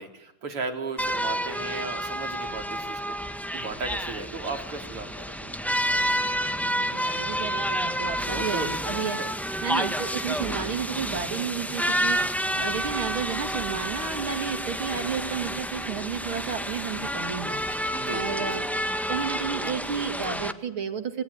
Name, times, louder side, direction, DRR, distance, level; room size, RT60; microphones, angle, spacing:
voice 1, 0.0-5.6 8.2-9.3 9.8-9.9 17.9-18.6, right 3 dB, 85° right, 4 dB, 4.5 m, -36 dB
sound 1, 1.0-20.5, equal, ahead, 1.0 m, -29 dB
voice 2, 6.5-9.2 9.6-17.6 18.1-18.7 19.1-21.2, right 7 dB, 70° right, 7 dB, 3.2 m, -32 dB
26.5 x 21.0 x 9.7 m, 0.74 s
omnidirectional pair, 2.4 m